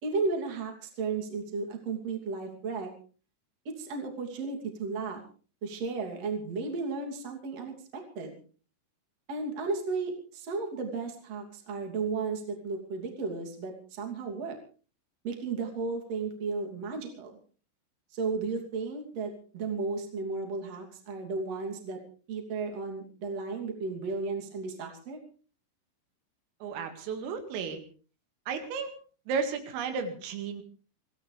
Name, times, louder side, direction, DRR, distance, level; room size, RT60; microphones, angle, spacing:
voice 1, 0.0-2.9 3.6-5.2 5.6-8.3 9.3-14.6 15.2-17.3 18.1-22.0 22.3-25.2, right 4 dB, 40° right, 2 dB, 3.3 m, -34 dB
voice 2, 26.6-27.8 28.5-28.9 29.3-30.6, right 5 dB, 90° right, 6 dB, 4.7 m, -33 dB
26.0 x 16.5 x 3.4 m, 0.39 s
omnidirectional pair, 5.7 m